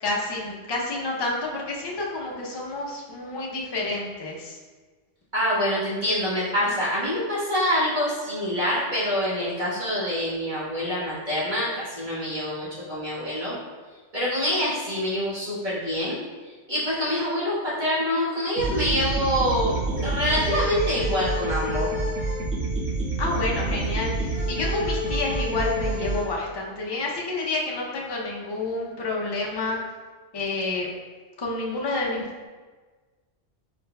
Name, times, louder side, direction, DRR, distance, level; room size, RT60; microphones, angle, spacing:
voice 1, 0.0-4.6 23.2-29.8 30.3-30.9 31.4-32.5, left 2 dB, 30° left, -3 dB, 0.4 m, -29 dB
voice 2, 5.3-13.5 14.1-16.2 16.7-21.9, equal, 40° right, -10 dB, 1.4 m, -26 dB
sound 1, 18.6-26.2, right 2 dB, 10° right, 1.5 m, -27 dB
4.2 x 4.0 x 2.2 m, 1.4 s
omnidirectional pair, 1.2 m